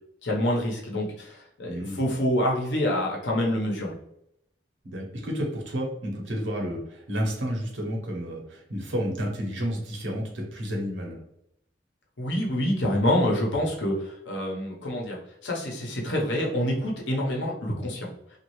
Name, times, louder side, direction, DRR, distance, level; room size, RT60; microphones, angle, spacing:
voice 1, 0.2-4.0 12.2-18.1, left 1 dB, 80° left, -1 dB, 0.8 m, -27 dB
voice 2, 1.6-2.1 4.8-11.2, equal, 85° right, 0 dB, 0.9 m, -31 dB
3.1 x 2.4 x 3.1 m, 0.78 s
head